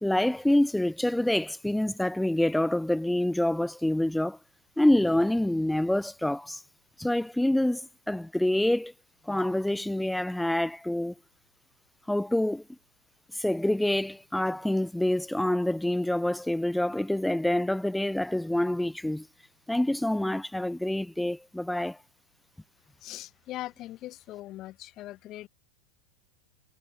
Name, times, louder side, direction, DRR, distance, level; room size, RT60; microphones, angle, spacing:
voice 1, 0.0-4.4 4.8-6.6 7.0-7.8 8.1-8.9 9.3-11.1 12.1-12.6 13.3-19.3 19.7-22.0, left 1 dB, 5° left, 1.9 m, -26 dB
voice 2, 23.0-25.5, left 15 dB, 35° left, 2.0 m, -40 dB
figure-of-eight pair, 90°, 0 cm